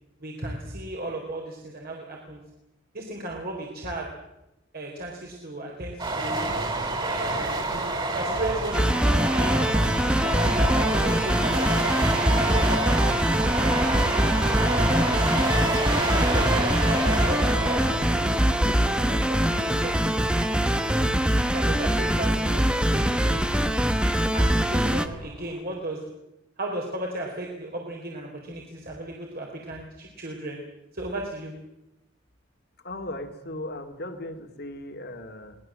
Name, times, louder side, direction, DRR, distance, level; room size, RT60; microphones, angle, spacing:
voice 1, 0.2-2.4 2.9-4.1 4.7-6.5 7.0-9.6 10.2-11.7 12.2-15.5 16.1-18.3 18.7-21.0 21.5-23.5 24.3-26.0 26.6-30.6 30.9-31.5, right 1 dB, 50° right, -1 dB, 4.2 m, -35 dB
sound 1, 6.0-25.6, right 2 dB, 25° right, 3.8 m, -29 dB
sound 2, 8.7-25.1, equal, 5° right, 1.1 m, -23 dB
voice 2, 32.8-35.6, left 1 dB, 55° left, 6 dB, 2.4 m, -37 dB
24.0 x 19.5 x 7.6 m, 0.89 s
head